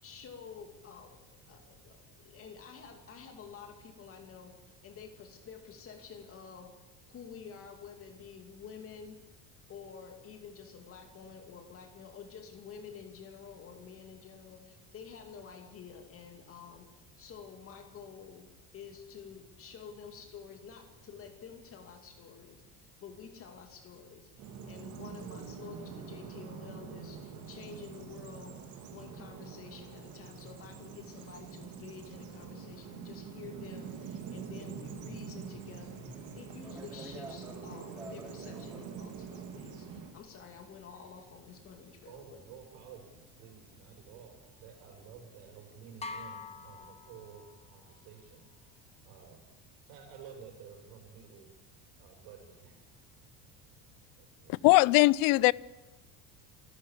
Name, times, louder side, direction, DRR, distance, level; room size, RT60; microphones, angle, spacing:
voice 1, 0.0-4.5 4.8-6.7 7.1-9.2 9.7-28.6 28.9-42.4, left 7 dB, 40° left, 5 dB, 2.5 m, -50 dB
Bird vocalization bird call bird song, 24.4-40.1, right 6 dB, 55° right, 2.7 m, -45 dB
sound 1, 33.5-46.3, right 1 dB, 5° right, 3.2 m, -55 dB
voice 2, 42.1-49.5 49.9-51.5 52.0-53.0 53.4-53.5 54.2-54.6, right 7 dB, 70° right, 2 dB, 6.3 m, -52 dB
sound 2, 46.0-47.8, left 4 dB, 20° left, 1.5 m, -44 dB
voice 3, 54.5-55.5, left 22 dB, 65° left, 24 dB, 0.6 m, -21 dB
28.5 x 13.5 x 7.3 m, 1.1 s
cardioid pair, 150°, 36 cm